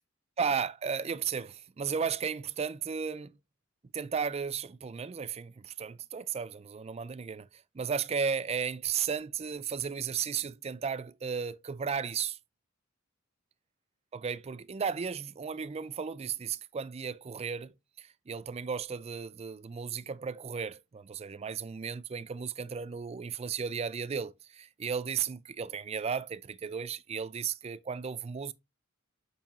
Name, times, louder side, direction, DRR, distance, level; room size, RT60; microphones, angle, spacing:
voice 1, 0.4-3.3 3.9-7.5 7.7-12.4 14.1-28.5, right 6 dB, 30° right, 0.4 m, -34 dB
7.2 x 5.5 x 2.9 m
head